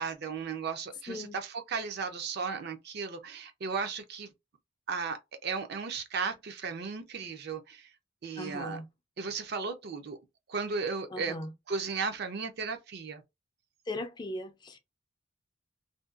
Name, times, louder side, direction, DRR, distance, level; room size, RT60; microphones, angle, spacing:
voice 1, 0.0-4.3 4.9-7.9 8.2-8.8 9.2-10.2 10.5-11.4 11.7-13.2, right 5 dB, 55° right, 0.5 m, -35 dB
voice 2, 8.4-8.9 11.1-11.5 13.9-14.8, left 1 dB, 25° left, 0.3 m, -38 dB
2.6 x 2.2 x 2.4 m
head